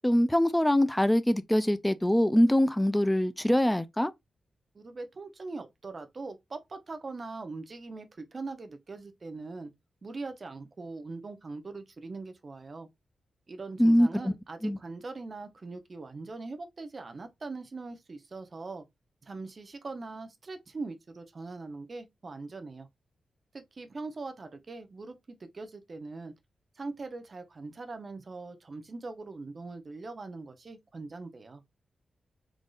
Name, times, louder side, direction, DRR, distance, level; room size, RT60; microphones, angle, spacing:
voice 1, 0.0-4.1 13.8-14.3 14.6-14.8, equal, 5° left, 0.4 m, -23 dB
voice 2, 4.7-9.7 10.0-12.9 13.5-18.8 19.2-22.9 23.5-26.3 26.8-31.6, right 3 dB, 35° right, 0.8 m, -41 dB
3.9 x 3.5 x 2.4 m
wide cardioid pair, 150°, 0 cm